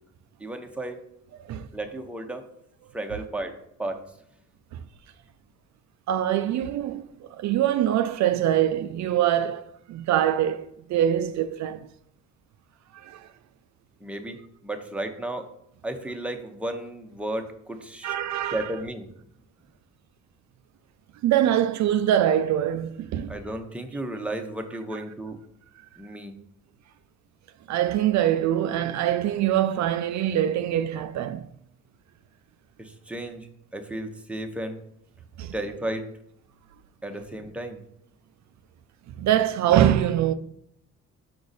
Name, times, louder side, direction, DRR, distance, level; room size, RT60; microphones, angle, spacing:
voice 1, 0.4-1.0 1.7-2.5 2.9-4.0 14.0-15.5 15.8-18.1 18.5-19.1 23.3-25.4 26.0-26.3 32.8-33.5 33.7-34.8 35.5-36.1 37.0-37.8, right 1 dB, 5° right, 0.8 m, -33 dB
voice 2, 1.3-1.7 4.7-4.8 6.1-7.1 7.4-11.9 13.0-13.3 18.0-18.7 21.2-23.3 27.7-31.5 35.4-35.5 39.2-40.3, right 11 dB, 65° right, 0.4 m, -24 dB
5.2 x 4.7 x 4.0 m
cardioid pair, 90°, 30 cm